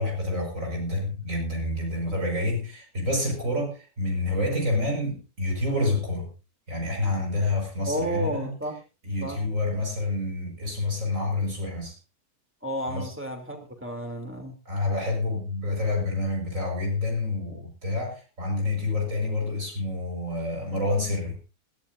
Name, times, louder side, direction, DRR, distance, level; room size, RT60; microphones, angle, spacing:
voice 1, 0.0-6.3 6.7-8.5 9.0-12.0 12.9-13.1 14.7-21.3, left 2 dB, 55° right, 5.8 m, -28 dB
voice 2, 7.9-8.8 9.2-9.4 12.6-14.6, right 1 dB, 5° right, 3.0 m, -31 dB
20.5 x 14.5 x 2.6 m
omnidirectional pair, 1.7 m